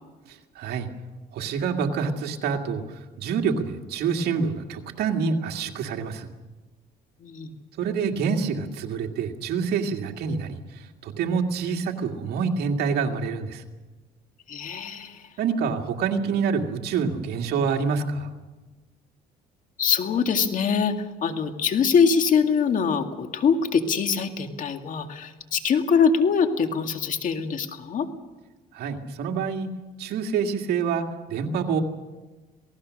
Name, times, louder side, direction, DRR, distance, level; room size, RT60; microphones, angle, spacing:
voice 1, 0.6-0.9 1.3-6.3 7.8-13.6 15.4-18.3 28.7-29.7 30.0-31.8, right 5 dB, 70° right, 3 dB, 2.1 m, -27 dB
voice 2, 14.5-15.3 19.8-28.1, left 6 dB, 50° left, 6 dB, 2.2 m, -23 dB
27.5 x 18.5 x 6.5 m, 1.2 s
cardioid pair, 110°, 17 cm